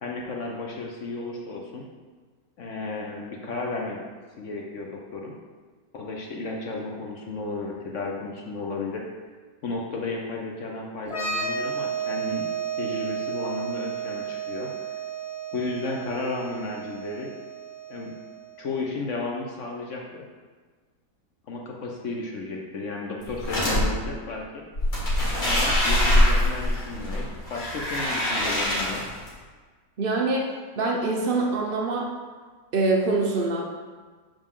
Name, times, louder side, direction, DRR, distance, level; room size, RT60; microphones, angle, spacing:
voice 1, 0.0-1.8 2.6-4.0 4.4-5.3 5.9-9.0 9.6-12.4 12.8-15.0 15.5-17.3 17.9-18.1 18.6-20.2 21.5-24.6 25.4-29.0, left 3 dB, 55° left, 0 dB, 0.9 m, -33 dB
sound 1, 11.0-18.6, right 6 dB, 30° left, 0.6 m, -32 dB
sound 2, 23.2-23.8 24.7-29.3, left 1 dB, 85° left, 2.7 m, -23 dB
voice 2, 30.0-30.5 30.8-32.1 32.7-33.6, right 3 dB, 85° right, -1 dB, 0.5 m, -24 dB
6.6 x 5.2 x 3.7 m, 1.4 s
omnidirectional pair, 1.9 m